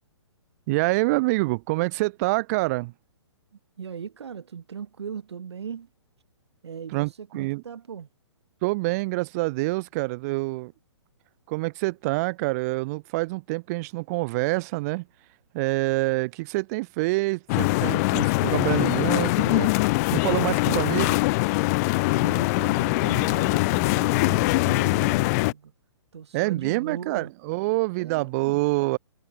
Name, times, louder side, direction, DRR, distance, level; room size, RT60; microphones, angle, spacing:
voice 1, 0.7-2.9 6.9-7.6 8.6-10.7 11.5-15.0 15.5-19.7 20.1-21.2 26.3-29.0, right 23 dB, 35° right, 1.7 m, -26 dB
voice 2, 3.8-5.9 6.6-8.1 21.7-25.7 26.1-27.3 28.0-28.6, right 7 dB, 65° right, 7.1 m, -38 dB
sound 1, 17.5-25.5, left 25 dB, 35° left, 2.0 m, -22 dB
figure-of-eight pair, 130°, 15 cm